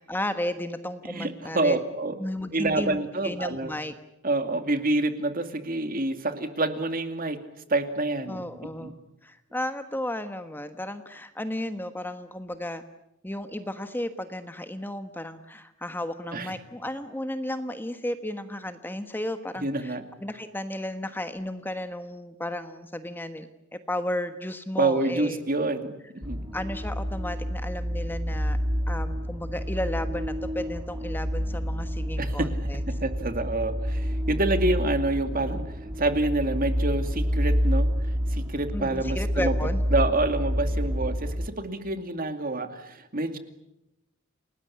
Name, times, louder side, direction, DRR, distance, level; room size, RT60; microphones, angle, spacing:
voice 1, 0.0-1.8 2.2-3.0 3.2-3.9 8.3-9.0 9.2-12.8 13.2-23.5 23.9-25.4 26.5-28.6 28.9-32.8 38.7-39.8, left 1 dB, 10° left, 9 dB, 1.3 m, -33 dB
voice 2, 1.1-2.2 2.5-3.7 4.2-7.4 7.7-8.4 8.8-8.9 16.3-16.5 19.6-20.0 24.8-26.5 32.2-32.5 33.0-35.6 36.0-37.9 38.3-39.5 39.9-43.4, right 2 dB, 45° right, 8 dB, 2.4 m, -27 dB
sound 1, 26.2-41.5, equal, 25° right, 3.1 m, -28 dB
29.5 x 19.5 x 9.9 m, 0.88 s
head